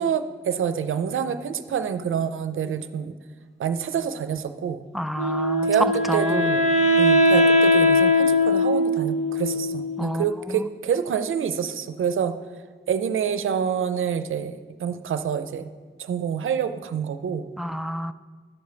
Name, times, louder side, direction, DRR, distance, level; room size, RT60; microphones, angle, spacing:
voice 1, 0.0-3.1 3.6-4.8 5.6-5.9 6.1-6.7 7.0-12.3 12.9-15.7 16.0-17.4, right 7 dB, 90° right, 11 dB, 0.5 m, -27 dB
voice 2, 4.9-5.7 6.1-6.4 10.0-10.7 17.6-18.1, equal, ahead, 12 dB, 0.4 m, -30 dB
Wind instrument woodwind instrument, 5.2-10.2, left 1 dB, 35° left, 1.3 m, -20 dB
11.0 x 4.9 x 6.8 m, 1.5 s
cardioid pair, 70°, 20 cm